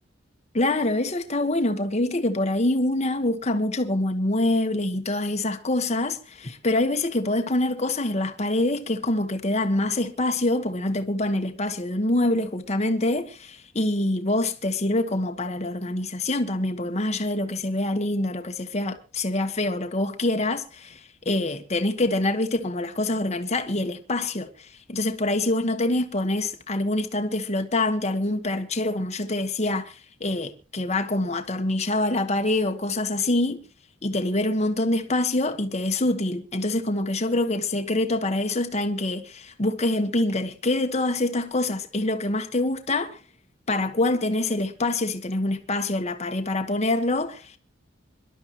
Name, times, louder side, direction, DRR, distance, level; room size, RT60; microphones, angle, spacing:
voice 1, 0.5-33.6 34.0-43.2 43.7-47.6, left 2 dB, 35° left, 1.2 m, -25 dB
25.5 x 11.5 x 2.9 m
head